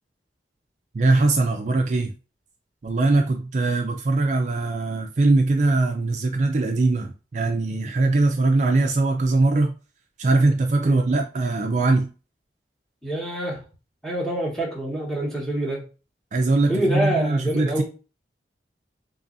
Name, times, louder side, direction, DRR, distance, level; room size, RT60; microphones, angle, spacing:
voice 1, 0.9-2.1 2.8-9.7 10.2-12.1 16.3-17.8, right 2 dB, 40° right, 0.4 m, -21 dB
voice 2, 13.0-13.6 14.0-15.8 16.7-17.8, right 1 dB, 5° left, 1.1 m, -26 dB
3.9 x 3.0 x 2.5 m
head